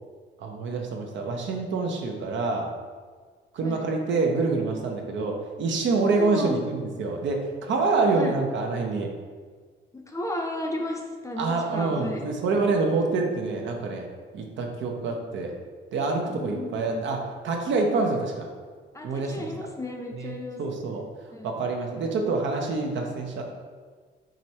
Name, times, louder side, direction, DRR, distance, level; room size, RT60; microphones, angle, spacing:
voice 1, 0.4-2.7 3.5-9.1 11.4-14.1 14.3-15.5 15.9-18.5 19.0-19.5 20.2-20.3 20.6-21.0 21.4-23.4, right 3 dB, 70° right, 2 dB, 0.7 m, -26 dB
voice 2, 6.1-6.6 8.1-8.4 9.9-12.2 16.4-17.1 18.9-20.6 21.3-21.5, left 1 dB, 15° left, 1 dB, 0.6 m, -34 dB
5.0 x 3.1 x 2.8 m, 1.5 s
cardioid pair, 90°, 20 cm